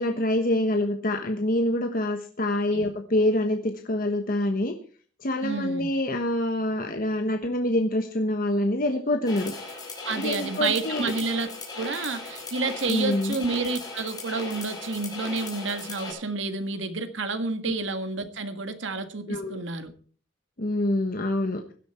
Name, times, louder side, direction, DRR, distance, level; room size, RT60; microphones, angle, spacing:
voice 1, 0.0-4.7 5.2-9.5 10.1-11.1 12.9-13.4 17.6-17.7 19.3-19.6 20.6-21.6, left 1 dB, 50° left, 5 dB, 1.3 m, -26 dB
voice 2, 5.4-5.9 10.0-11.5 11.7-19.9, right 3 dB, 75° right, 9 dB, 1.7 m, -30 dB
sound 1, 9.3-16.1, left 3 dB, 20° left, 6.2 m, -38 dB
17.0 x 12.0 x 4.4 m, 0.43 s
head